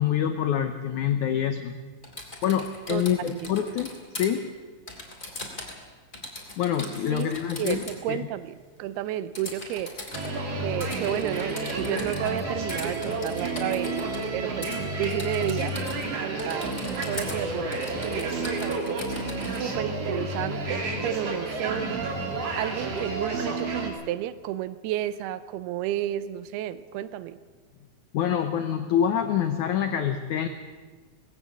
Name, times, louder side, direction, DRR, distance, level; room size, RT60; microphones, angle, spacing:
voice 1, 0.0-1.7 2.4-4.4 6.6-8.2 28.1-30.5, left 9 dB, 80° left, 8 dB, 1.7 m, -26 dB
Typing, 2.0-4.3 4.9-5.8 6.1-8.0 9.3-10.3 10.8-12.4 12.7-14.3 14.6-14.8 15.0-16.1 16.4-17.4 17.7-19.6, left 2 dB, 15° left, 2.6 m, -40 dB
voice 2, 2.9-3.6 7.1-7.3 7.6-10.0 10.6-14.7 15.0-15.8 16.2-19.0 19.4-22.1 22.6-27.4, right 12 dB, 80° right, 15 dB, 2.6 m, -32 dB
sound 1, 10.1-23.9, right 2 dB, 40° right, 3.0 m, -30 dB
19.0 x 16.5 x 8.2 m, 1.4 s
omnidirectional pair, 4.8 m